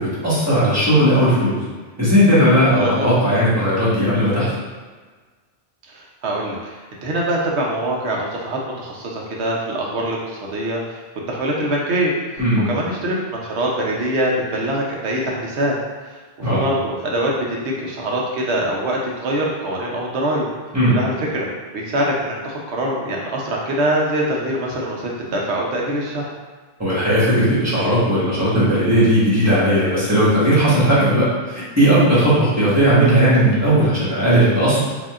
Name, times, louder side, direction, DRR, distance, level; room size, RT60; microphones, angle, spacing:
voice 1, 0.0-1.6 2.0-4.5 12.4-12.7 16.4-16.6 20.7-21.0 26.8-34.8, equal, 15° right, -9 dB, 1.4 m, -16 dB
voice 2, 2.8-3.1 5.9-11.0 11.3-15.8 16.5-20.5 20.9-21.5 21.7-26.3, right 1 dB, 80° right, -2 dB, 1.1 m, -23 dB
5.0 x 2.7 x 2.5 m, 1.4 s
omnidirectional pair, 1.1 m